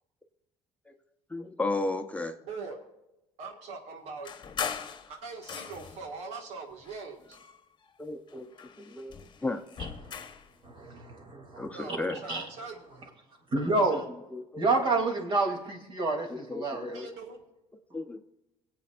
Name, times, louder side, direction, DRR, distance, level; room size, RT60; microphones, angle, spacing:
voice 1, 1.3-2.3 8.0-8.5 8.8-9.6 11.6-12.2 13.6-13.7 14.3-14.6 16.3-17.1 17.9-18.2, left 2 dB, 10° left, 5 dB, 0.9 m, -34 dB
voice 2, 2.4-2.8 3.4-4.3 5.1-7.4 11.7-13.1 16.9-17.4, right 4 dB, 75° right, 2 dB, 1.9 m, -42 dB
sound 1, 4.2-6.1 6.8-8.0 8.3-10.5, left 7 dB, 40° left, 1.1 m, -40 dB
voice 3, 10.6-12.5 12.7-13.1 13.5-14.1 14.6-17.0, right 3 dB, 45° right, 2 dB, 3.0 m, -29 dB
23.0 x 8.5 x 2.6 m, 0.94 s
cardioid pair, 90°, 11 cm